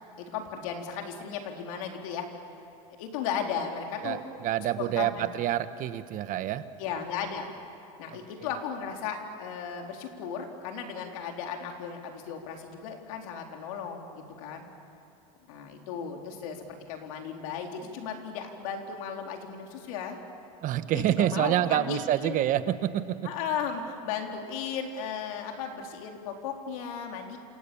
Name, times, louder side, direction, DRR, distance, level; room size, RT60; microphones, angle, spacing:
voice 1, 0.2-2.3 3.0-4.2 4.8-5.3 6.8-7.5 8.0-14.7 15.5-20.2 20.8-22.4 23.2-27.4, left 7 dB, 80° left, 2 dB, 4.1 m, -35 dB
voice 2, 4.0-6.6 8.1-8.2 20.6-23.2, right 12 dB, 50° right, 11 dB, 1.3 m, -27 dB
28.5 x 28.0 x 7.2 m, 2.9 s
supercardioid pair, 110°, 18 cm